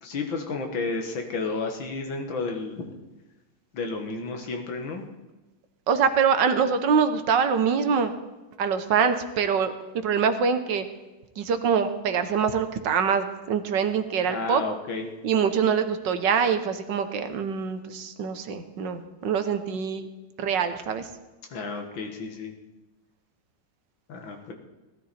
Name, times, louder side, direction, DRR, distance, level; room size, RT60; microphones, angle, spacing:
voice 1, 0.0-2.9 3.7-5.1 14.3-15.1 21.5-22.5 24.1-24.5, left 3 dB, 65° left, 4 dB, 2.3 m, -32 dB
voice 2, 5.9-8.1 8.6-9.7 10.0-10.9 11.4-14.6 15.2-20.1 20.4-21.1, right 6 dB, 65° right, 9 dB, 1.5 m, -24 dB
17.5 x 13.0 x 4.3 m, 1.1 s
omnidirectional pair, 2.3 m